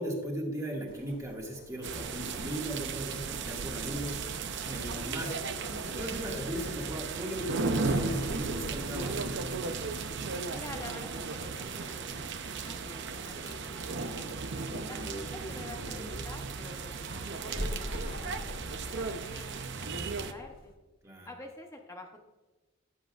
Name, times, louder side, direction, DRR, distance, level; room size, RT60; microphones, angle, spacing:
voice 1, 0.0-5.4 5.8-9.2 14.7-15.2 21.0-21.3, equal, 15° right, -2 dB, 1.9 m, -38 dB
sound 1, 0.9-20.7, equal, 45° left, 1.4 m, -45 dB
sound 2, 1.8-20.3, right 4 dB, 55° right, 0.7 m, -35 dB
voice 2, 10.5-14.3 14.9-18.6 18.8-20.7 21.3-22.2, left 2 dB, 15° left, 1 dB, 0.8 m, -48 dB
15.5 x 7.8 x 2.4 m, 1.2 s
head